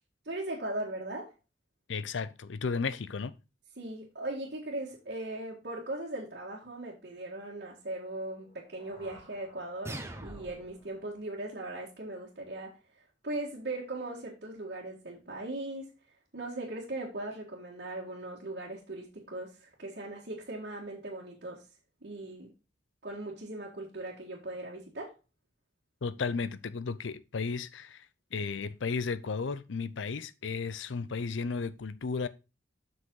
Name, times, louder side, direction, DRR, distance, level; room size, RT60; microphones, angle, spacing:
voice 1, 0.2-1.3 3.8-15.9 16.3-21.6 22.0-22.5 23.0-25.1, right 2 dB, 60° right, 1.7 m, -39 dB
voice 2, 1.9-3.3 26.0-28.1 28.3-32.3, left 4 dB, 85° left, 0.6 m, -34 dB
sound 1, 8.3-12.3, right 1 dB, 40° left, 4.8 m, -59 dB
sound 2, 9.8-10.8, right 1 dB, 15° right, 0.9 m, -41 dB
7.6 x 6.1 x 3.8 m
head